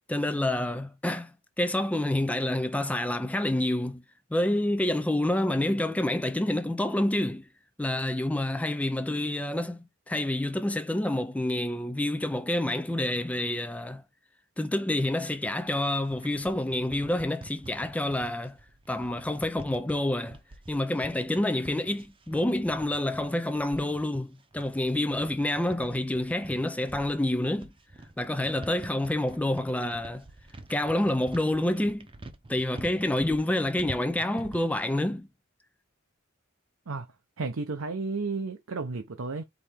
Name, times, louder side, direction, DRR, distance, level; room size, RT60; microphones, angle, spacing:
voice 1, 0.1-4.0 4.3-7.5 7.8-14.0 14.6-18.6 18.9-20.4 20.7-27.7 28.2-30.2 30.7-32.1 32.5-35.3, left 1 dB, 5° left, 0.3 m, -28 dB
sound 1, 15.7-34.8, right 2 dB, 25° right, 0.8 m, -47 dB
voice 2, 37.4-39.4, right 3 dB, 75° right, 0.7 m, -32 dB
4.8 x 3.2 x 3.5 m
head